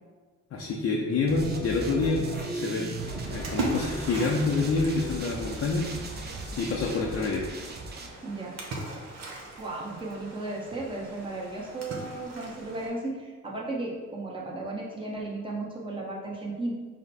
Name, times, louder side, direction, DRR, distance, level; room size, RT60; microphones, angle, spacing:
voice 1, 0.5-2.3 2.5-6.2 6.5-7.4, left 3 dB, 50° left, -2 dB, 0.6 m, -27 dB
sound 1, 1.3-8.1, right 2 dB, 35° right, 0.6 m, -37 dB
Splash splatter, 2.9-12.9, right 1 dB, 60° right, 1.1 m, -39 dB
voice 2, 8.2-8.5 9.6-16.7, right 2 dB, 15° right, -4 dB, 1.1 m, -35 dB
4.9 x 2.2 x 4.3 m, 1.4 s
cardioid pair, 90°, 30 cm